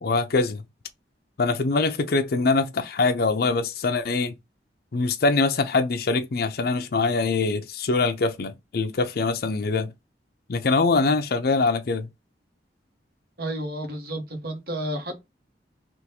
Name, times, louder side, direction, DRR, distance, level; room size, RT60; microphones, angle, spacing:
voice 1, 0.0-0.6 1.4-4.3 4.9-9.9 10.5-12.1, left 3 dB, 60° left, 0.5 m, -23 dB
voice 2, 13.4-15.2, right 1 dB, 60° right, 1.2 m, -31 dB
3.5 x 2.5 x 2.8 m
head